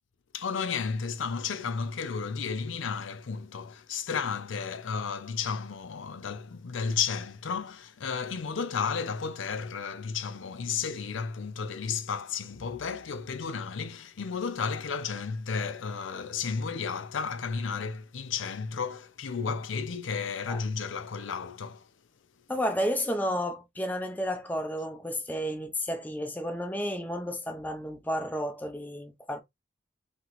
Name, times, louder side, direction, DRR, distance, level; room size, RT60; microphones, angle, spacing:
voice 1, 0.3-21.9, left 5 dB, 80° left, 0.5 m, -33 dB
voice 2, 22.5-29.4, equal, 10° left, 0.6 m, -32 dB
2.9 x 2.9 x 4.0 m
head